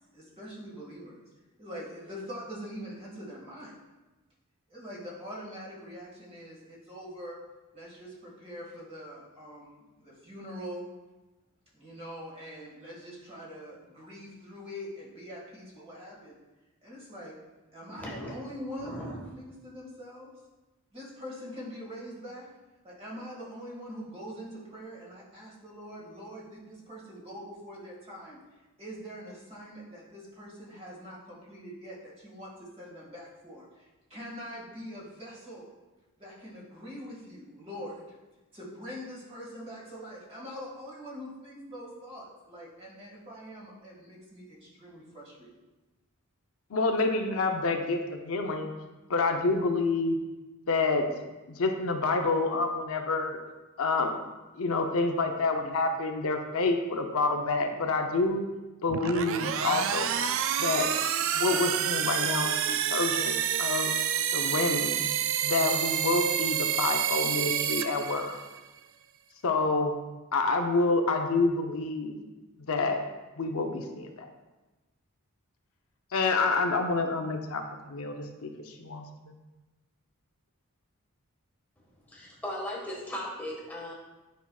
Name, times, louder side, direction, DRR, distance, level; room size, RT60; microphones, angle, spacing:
voice 1, 0.1-1.2 1.6-3.8 4.7-7.4 7.7-10.9 11.7-16.4 16.8-17.4 17.7-20.3 20.9-22.5 22.8-28.4 28.8-35.7 36.2-38.0 38.5-45.5, equal, 25° right, -5 dB, 1.9 m, -43 dB
voice 2, 18.0-18.3 18.8-19.4 82.1-83.9, equal, 5° left, -4 dB, 1.5 m, -37 dB
voice 3, 46.7-48.7 49.1-50.2 50.7-51.1 51.5-53.4 53.8-54.2 54.6-58.5 58.8-60.1 60.6-60.9 61.3-63.9 64.3-65.0 65.4-68.3 69.4-69.9 70.3-72.2 72.7-73.0 73.4-74.3 76.1-79.3, left 3 dB, 70° left, 3 dB, 0.6 m, -28 dB
sound 1, 58.9-68.6, right 9 dB, 60° right, 0.3 m, -28 dB
9.3 x 5.6 x 2.3 m, 1.1 s
head